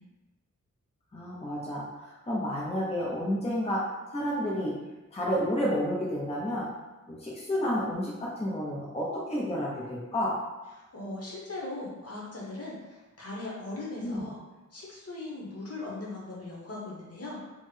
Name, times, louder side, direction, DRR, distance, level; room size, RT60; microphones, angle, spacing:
voice 1, 1.1-3.8 4.1-4.7 5.1-6.7 7.1-10.4 14.0-14.3, equal, 20° left, -6 dB, 0.6 m, -30 dB
voice 2, 10.8-14.4 14.7-17.4, left 2 dB, 55° left, -4 dB, 1.0 m, -39 dB
3.6 x 2.1 x 3.2 m, 1.1 s
wide cardioid pair, 105°, 30 cm